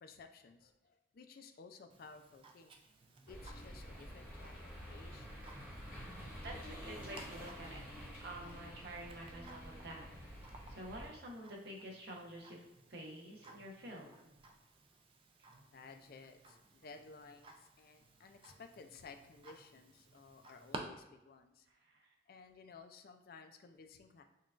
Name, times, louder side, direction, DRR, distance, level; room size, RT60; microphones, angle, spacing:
voice 1, 0.0-2.8 3.3-5.4 15.7-21.7 22.3-24.2, left 4 dB, 55° left, 7 dB, 0.4 m, -56 dB
Tick-tock, 1.9-20.8, right 3 dB, 30° right, 0.3 m, -57 dB
sound 1, 3.3-11.1, equal, 10° right, 0.9 m, -49 dB
voice 2, 6.4-7.9 8.2-10.1 10.7-12.6 12.9-14.1 21.7-22.1, right 1 dB, 60° right, -1 dB, 0.8 m, -49 dB
5.5 x 2.3 x 2.4 m, 0.95 s
head